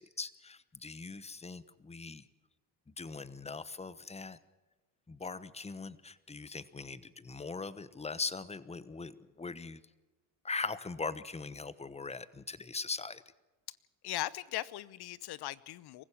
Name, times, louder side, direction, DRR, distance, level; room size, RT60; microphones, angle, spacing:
voice 1, 0.0-2.2 3.0-4.4 5.1-9.8 10.4-13.2, left 4 dB, 15° left, 16 dB, 1.0 m, -40 dB
voice 2, 14.0-16.0, left 14 dB, 50° left, 20 dB, 0.8 m, -39 dB
24.0 x 15.5 x 7.3 m, 1.2 s
supercardioid pair, 85°, 49 cm